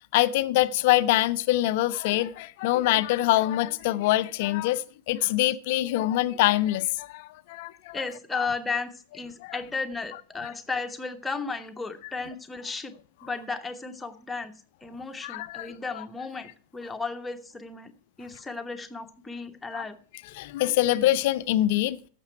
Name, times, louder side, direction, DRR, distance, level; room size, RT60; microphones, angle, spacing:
voice 1, 0.1-8.0 8.3-8.5 9.4-9.6 15.2-16.0 19.7-19.8 20.4-22.1, left 15 dB, 50° left, 0.5 m, -25 dB
voice 2, 7.9-13.0 13.2-14.5 14.8-17.9 18.2-20.0, left 4 dB, 10° left, 1.1 m, -34 dB
15.0 x 6.7 x 4.4 m
figure-of-eight pair, 90°, 0 cm